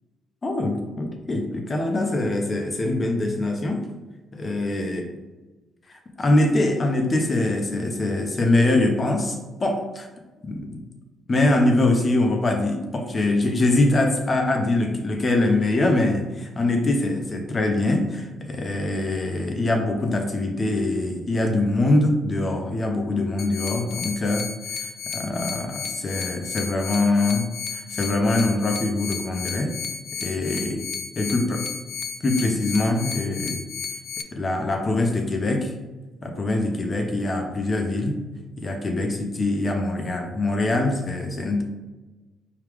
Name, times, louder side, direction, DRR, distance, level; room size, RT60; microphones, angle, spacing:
voice 1, 0.4-3.8 4.3-5.0 5.9-10.1 10.4-10.8 11.3-24.5 24.8-27.5 27.7-29.7 30.2-30.8 31.2-31.7 32.2-33.6 34.3-35.7 36.2-38.2 38.6-41.6, left 2 dB, 35° left, 3 dB, 0.7 m, -23 dB
sound 1, 23.4-34.2, left 6 dB, 55° left, 0.3 m, -33 dB
4.8 x 2.3 x 3.4 m, 1.2 s
cardioid pair, 90°, 0 cm